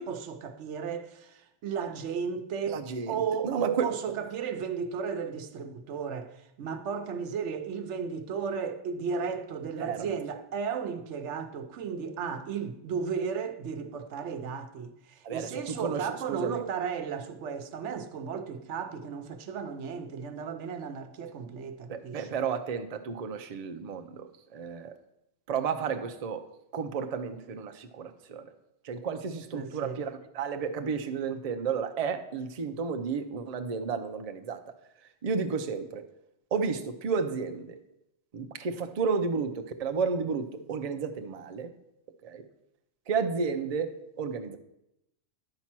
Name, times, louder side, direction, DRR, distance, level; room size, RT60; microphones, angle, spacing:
voice 1, 0.0-22.3 29.5-30.0, right 6 dB, 85° right, 1.0 m, -34 dB
voice 2, 2.7-3.9 9.8-10.2 15.2-16.6 21.9-24.9 25.5-26.5 26.7-28.5 28.8-34.6 35.0-36.1 36.5-37.8 38.3-41.7 42.2-42.4 43.1-44.6, right 5 dB, 40° right, 0.6 m, -32 dB
10.5 x 4.3 x 6.0 m
omnidirectional pair, 1.2 m